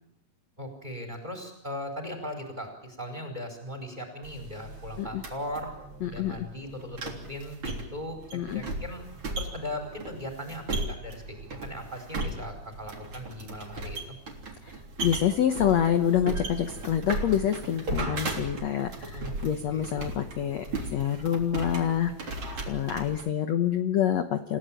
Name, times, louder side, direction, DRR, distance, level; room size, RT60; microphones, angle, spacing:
voice 1, 0.6-5.7 6.0-9.0 9.4-14.0 19.1-19.8, left 1 dB, 10° right, 5 dB, 4.8 m, -38 dB
sound 1, 4.2-23.3, right 2 dB, 35° right, 3.8 m, -37 dB
voice 2, 6.0-6.5 8.3-8.6 14.6-20.6 20.9-22.4 22.7-24.6, left 10 dB, 70° left, 8 dB, 1.6 m, -27 dB
29.0 x 16.5 x 9.0 m, 0.80 s
omnidirectional pair, 4.6 m